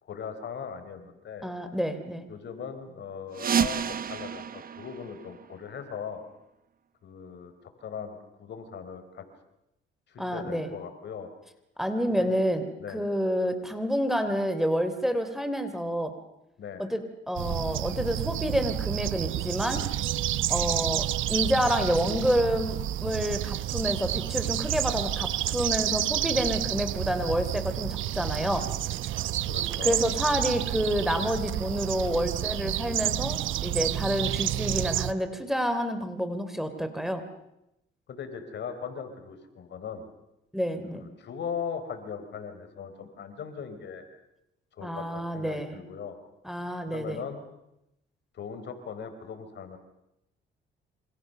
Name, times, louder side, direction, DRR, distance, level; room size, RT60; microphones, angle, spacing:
voice 1, 0.0-1.5 2.3-6.2 7.0-9.2 10.1-11.3 12.2-12.3 12.8-13.1 16.6-16.8 29.4-30.0 38.1-40.1 40.9-44.1 44.7-46.2 46.9-47.4 48.3-49.8, left 6 dB, 65° left, 9 dB, 4.3 m, -39 dB
voice 2, 1.4-2.2 10.2-10.7 11.8-12.7 12.9-16.1 16.8-17.0 17.3-19.8 20.5-28.6 29.8-37.2 40.5-41.0 44.8-45.8 46.4-47.2, equal, ahead, 9 dB, 3.4 m, -28 dB
sound 1, 3.3-5.9, right 7 dB, 45° right, 1.2 m, -30 dB
sound 2, 17.4-35.1, right 13 dB, 80° right, 0.9 m, -30 dB
28.0 x 26.0 x 6.8 m, 0.85 s
cardioid pair, 90°, 20 cm